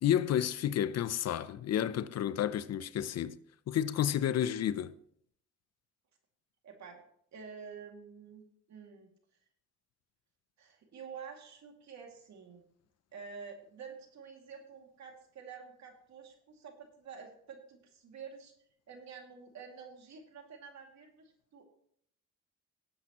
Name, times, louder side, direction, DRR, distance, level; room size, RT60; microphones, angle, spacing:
voice 1, 0.0-3.4 3.7-4.9, left 10 dB, 55° left, 0.6 m, -31 dB
voice 2, 6.6-7.0 7.3-9.1 10.6-12.6 13.1-18.5 18.9-21.7, right 6 dB, 65° right, 2.4 m, -49 dB
18.5 x 7.9 x 3.0 m
cardioid pair, 90°, 30 cm